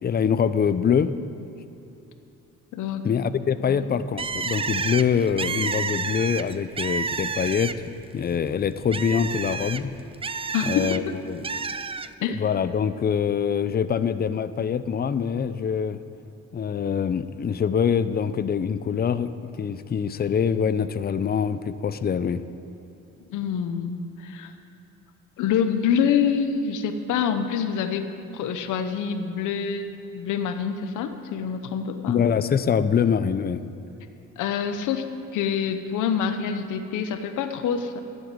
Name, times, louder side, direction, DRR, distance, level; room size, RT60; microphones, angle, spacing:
voice 1, 0.0-1.1 3.0-7.7 8.1-9.9 10.6-11.0 11.3-11.5 12.3-16.0 16.5-22.4 32.1-33.6, left 7 dB, 30° left, 13 dB, 0.6 m, -24 dB
voice 2, 2.7-3.1 3.6-3.9 10.5-11.1 12.2-12.4 23.3-24.5 25.4-28.1 28.3-29.9 30.1-32.2 34.4-35.1 35.3-38.0, left 7 dB, 85° left, 8 dB, 0.9 m, -26 dB
Bird, 4.2-8.0 8.4-11.0 11.4-12.1, right 5 dB, 20° right, 0.4 m, -30 dB
11.5 x 8.0 x 9.0 m, 2.9 s
cardioid pair, 90°, 30 cm